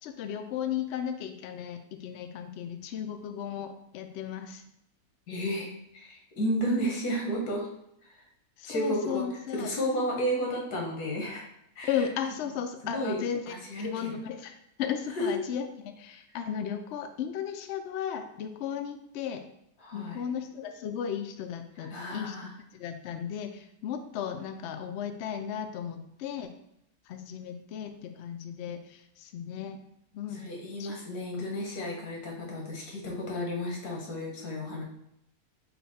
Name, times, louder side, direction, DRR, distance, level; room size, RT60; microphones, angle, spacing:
voice 1, 0.0-4.6 8.6-9.7 11.8-19.4 19.9-22.4 22.7-26.5 27.1-29.8 30.1-30.4 30.8-30.9, left 8 dB, 70° left, 7 dB, 0.6 m, -35 dB
voice 2, 5.3-5.7 5.9-7.7 8.6-9.2 9.5-11.4 11.8-12.0 12.8-13.2 13.5-14.2 15.2-15.3 19.8-20.2 21.9-22.5 30.3-34.8, equal, 85° left, -1 dB, 1.6 m, -32 dB
5.5 x 2.2 x 4.1 m, 0.79 s
omnidirectional pair, 1.6 m